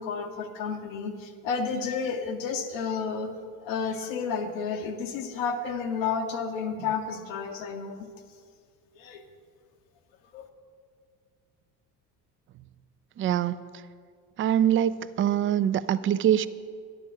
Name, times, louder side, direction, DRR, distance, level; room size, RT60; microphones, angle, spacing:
voice 1, 0.0-3.4 3.6-8.1 9.0-9.2 10.3-10.5, left 5 dB, 75° left, 4 dB, 0.9 m, -31 dB
voice 2, 13.2-13.5 14.4-16.5, right 10 dB, 30° right, 16 dB, 0.3 m, -24 dB
10.5 x 6.7 x 5.7 m, 2.1 s
hypercardioid pair, 60°, 44 cm